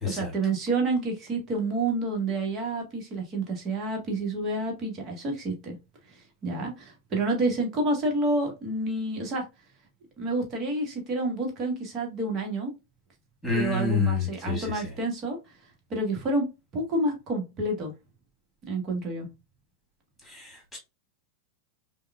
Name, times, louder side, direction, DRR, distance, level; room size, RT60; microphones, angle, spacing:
voice 1, 0.0-5.7 6.1-6.2 6.4-9.4 10.2-12.7 13.5-15.4 15.9-17.9 18.7-19.3, right 2 dB, 30° right, 1.4 m, -29 dB
voice 2, 13.4-14.6 20.3-20.8, left 4 dB, 5° left, 2.3 m, -28 dB
5.2 x 2.3 x 2.3 m
figure-of-eight pair, 90°, 0 cm